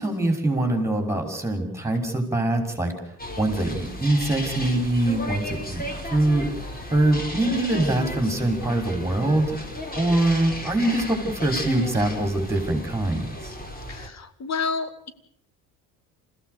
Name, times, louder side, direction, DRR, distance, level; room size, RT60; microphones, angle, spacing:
voice 1, 0.0-2.9 3.4-5.8 6.1-6.5 6.9-9.6 10.0-13.5, right 1 dB, 5° right, 4 dB, 5.8 m, -23 dB
sound 1, 3.2-14.1, left 1 dB, 20° left, 4.3 m, -35 dB
voice 2, 13.9-15.1, left 5 dB, 40° left, 13 dB, 2.1 m, -30 dB
28.5 x 15.5 x 6.9 m, 0.71 s
hypercardioid pair, 60°, 42 cm